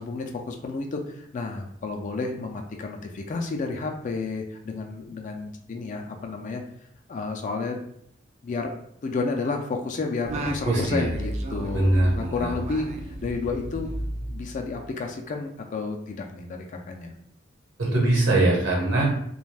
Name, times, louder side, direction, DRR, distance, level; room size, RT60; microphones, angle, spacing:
voice 1, 0.0-6.6 7.1-7.8 8.4-8.7 9.0-11.9 12.2-13.9 14.3-17.1, left 3 dB, 40° left, 3 dB, 0.3 m, -31 dB
Singing, 10.2-15.0, right 1 dB, 35° right, 0.3 m, -34 dB
voice 2, 10.6-11.1 11.7-12.5 17.8-19.1, right 2 dB, 70° right, -2 dB, 1.0 m, -22 dB
2.5 x 2.2 x 3.2 m, 0.72 s
head